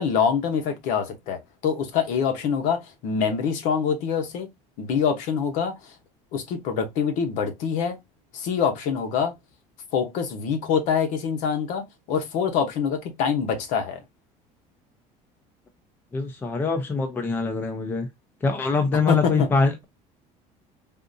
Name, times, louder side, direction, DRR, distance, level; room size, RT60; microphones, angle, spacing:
voice 1, 0.0-4.5 4.8-5.9 6.3-8.0 8.3-9.3 9.9-14.0 19.1-19.5, left 7 dB, 60° left, 0.9 m, -25 dB
voice 2, 16.1-18.1 18.4-19.9, left 4 dB, 15° left, 0.5 m, -24 dB
3.6 x 2.5 x 2.6 m
cardioid pair, 170°, 15 cm